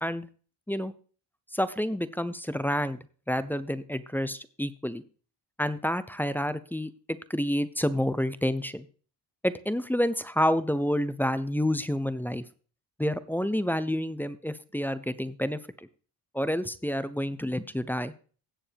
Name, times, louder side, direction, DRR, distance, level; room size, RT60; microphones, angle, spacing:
voice 1, 1.5-3.0 3.3-5.0 5.6-8.9 9.4-12.4 13.0-15.9 16.3-18.1, equal, 5° left, 15 dB, 0.5 m, -29 dB
16.5 x 6.9 x 3.4 m, 0.40 s
cardioid pair, 100°, 43 cm